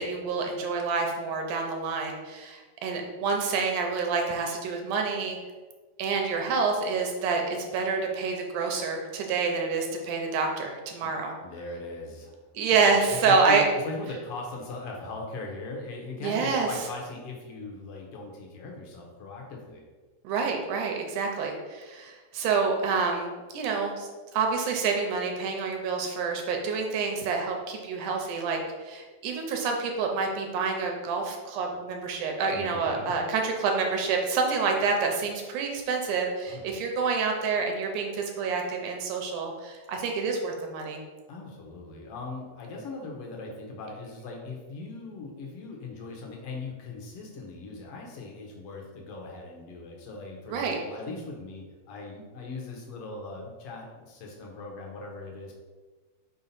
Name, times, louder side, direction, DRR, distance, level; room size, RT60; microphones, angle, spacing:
voice 1, 0.0-5.4 6.0-11.3 12.6-13.6 16.2-16.7 20.2-41.0 50.5-50.8, right 4 dB, 80° right, 2 dB, 2.1 m, -28 dB
voice 2, 11.4-19.8 32.5-33.1 36.5-36.8 41.3-55.5, left 3 dB, 65° left, 0 dB, 1.5 m, -39 dB
5.6 x 4.8 x 4.1 m, 1.3 s
omnidirectional pair, 3.8 m